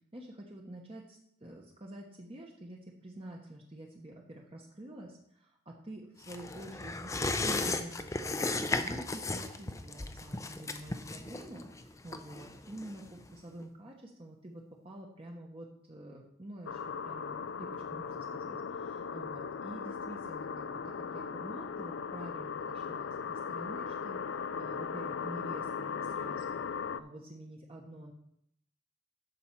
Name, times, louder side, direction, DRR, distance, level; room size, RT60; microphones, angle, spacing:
voice 1, 0.1-24.2 24.6-26.6 27.0-28.1, right 1 dB, 30° right, 0 dB, 1.0 m, -48 dB
sound 1, 6.2-13.3 13.6-13.7, left 2 dB, 15° left, 0.5 m, -35 dB
sound 2, 16.6-27.0, left 6 dB, 75° left, 0.4 m, -38 dB
13.0 x 5.5 x 4.6 m, 0.72 s
head